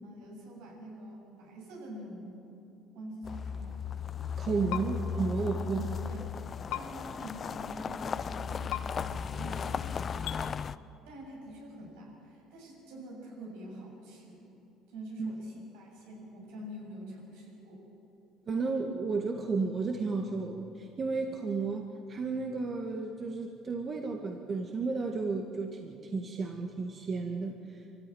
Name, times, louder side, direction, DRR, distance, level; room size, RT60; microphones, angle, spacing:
voice 1, 0.0-2.6 2.9-3.8 4.5-4.8 5.1-6.3 6.7-10.5 11.1-14.5 14.9-17.9, equal, 80° right, -2 dB, 7.3 m, -46 dB
sound 1, 3.2-10.7, left 6 dB, 40° left, 0.6 m, -36 dB
voice 2, 4.4-5.8 15.2-15.3 18.5-27.8, right 4 dB, 40° right, 3 dB, 1.8 m, -33 dB
sound 2, 4.7-4.8 6.7-6.8 8.7-8.8 10.2-10.4, left 14 dB, 80° left, 1.0 m, -34 dB
24.0 x 15.0 x 9.3 m, 2.8 s
supercardioid pair, 80°, 0 cm